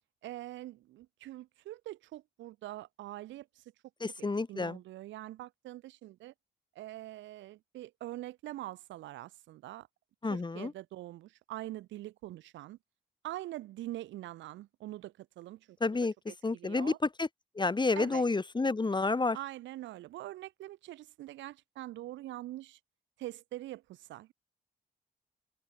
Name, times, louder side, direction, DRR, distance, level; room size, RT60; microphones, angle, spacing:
voice 1, 0.2-3.6 4.2-6.3 6.7-9.9 10.3-12.8 13.2-15.8 16.3-17.0 18.0-18.3 19.3-22.8 23.2-24.3, right 15 dB, 85° right, 2.5 m, -44 dB
voice 2, 4.0-4.8 10.2-10.7 15.8-16.1 16.4-16.9 17.2-17.3 17.5-19.4, left 3 dB, 25° left, 1.0 m, -30 dB
open air
supercardioid pair, 50°, 19 cm